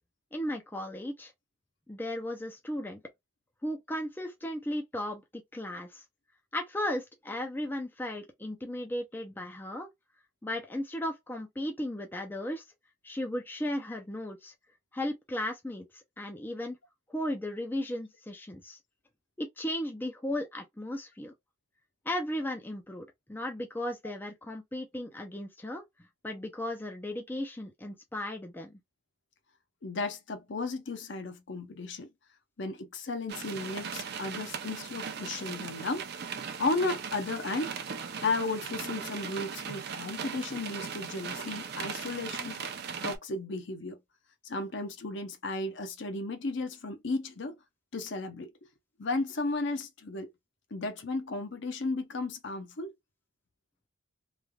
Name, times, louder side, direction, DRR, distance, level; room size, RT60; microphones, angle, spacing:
voice 1, 0.3-1.3 1.9-3.0 3.6-6.0 6.5-9.9 10.4-12.6 13.0-14.5 14.9-16.8 17.1-18.8 19.4-21.3 22.1-25.8 26.2-28.8, left 1 dB, 10° left, 0.5 m, -36 dB
voice 2, 29.8-32.1 32.6-36.2 36.6-37.8 38.2-42.6 43.0-44.0 44.4-47.6 47.9-48.5 49.0-50.3 50.7-52.9, left 3 dB, 60° left, 0.7 m, -34 dB
sound 1, 33.3-43.2, right 6 dB, 50° right, 0.5 m, -38 dB
3.2 x 2.4 x 2.2 m
head